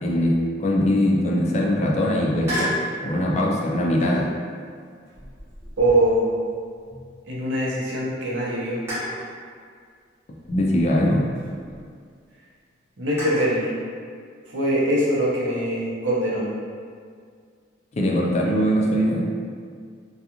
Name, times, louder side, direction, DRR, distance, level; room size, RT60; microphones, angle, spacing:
voice 1, 0.0-2.7 3.0-4.3 10.5-11.3 17.9-19.3, equal, 35° left, -2 dB, 0.3 m, -21 dB
sound 1, 2.4-2.9 4.0-4.4 5.0-7.4 7.8-7.9 8.9-9.3 10.5-11.8 13.2-13.6, left 1 dB, 15° right, 0.9 m, -33 dB
voice 2, 5.8-6.4 7.2-8.8 13.0-13.7 14.5-16.5, right 1 dB, 80° right, -6 dB, 0.7 m, -22 dB
2.4 x 2.3 x 2.8 m, 2.1 s
head